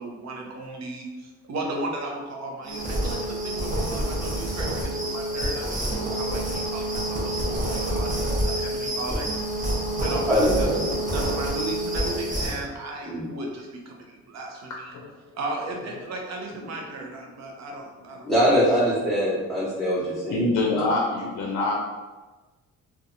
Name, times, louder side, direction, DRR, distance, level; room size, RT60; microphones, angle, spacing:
voice 1, 0.0-9.3 10.0-14.9 15.3-18.8, right 2 dB, 60° right, 0 dB, 0.7 m, -36 dB
sound 1, 2.6-12.6, right 1 dB, 25° right, 0.8 m, -27 dB
voice 2, 10.3-10.8 13.0-13.3 18.3-20.4 20.7-20.8, equal, ahead, -11 dB, 0.9 m, -22 dB
voice 3, 18.4-18.9 20.2-21.7, left 2 dB, 65° left, -1 dB, 0.5 m, -26 dB
2.7 x 2.3 x 2.5 m, 1.2 s
cardioid pair, 90°, 30 cm